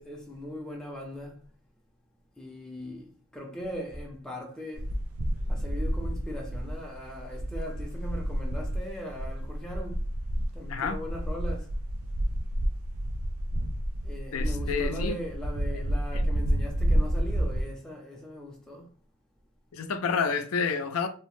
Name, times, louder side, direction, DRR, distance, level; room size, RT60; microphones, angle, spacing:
voice 1, 0.0-1.4 2.4-4.9 5.5-10.0 10.5-11.7 14.0-18.9, equal, 5° left, 0.5 m, -40 dB
sound 1, 4.7-17.6, equal, 85° right, 0.5 m, -30 dB
voice 2, 10.7-11.0 14.3-15.2 16.1-16.2 19.7-21.1, left 5 dB, 80° left, 0.4 m, -29 dB
2.8 x 2.0 x 3.1 m
head